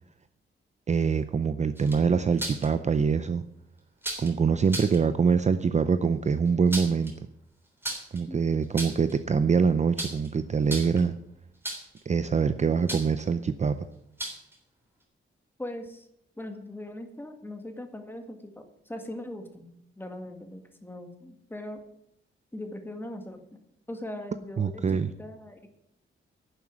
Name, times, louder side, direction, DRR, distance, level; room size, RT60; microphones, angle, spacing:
voice 1, 0.9-3.4 4.2-7.1 8.1-11.1 12.1-13.8 24.6-25.1, right 5 dB, 35° right, 11 dB, 0.5 m, -24 dB
sound 1, 1.8-2.7 4.0-4.3 4.7-5.0 6.5-7.1 7.8-8.2 8.6-9.1 10.0-10.3 10.6-11.1 11.6-12.0 12.9-13.2 14.2-14.5, right 1 dB, 10° right, 3.3 m, -35 dB
voice 2, 15.6-16.1 16.4-19.7 20.0-21.8 22.5-23.6 23.9-25.7, left 1 dB, 10° left, 5 dB, 1.8 m, -40 dB
11.0 x 7.2 x 9.1 m, 0.76 s
wide cardioid pair, 150°, 21 cm